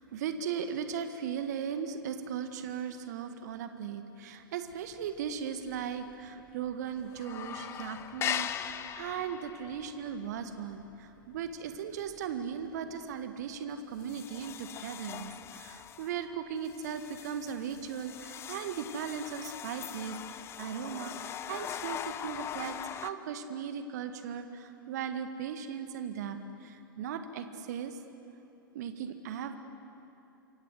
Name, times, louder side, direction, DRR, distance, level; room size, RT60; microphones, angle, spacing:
voice 1, 0.1-10.8 11.3-20.2 20.6-26.4 26.6-27.9 28.7-29.6, right 7 dB, 50° right, 9 dB, 1.8 m, -37 dB
sound 1, 4.9-5.4 5.7-5.8 6.1-6.7 7.0-12.3 12.6-12.9 13.4-13.5 14.0-23.1, left 10 dB, 20° left, 0.7 m, -41 dB
27.5 x 24.5 x 8.1 m, 2.9 s
figure-of-eight pair, 100°, 12 cm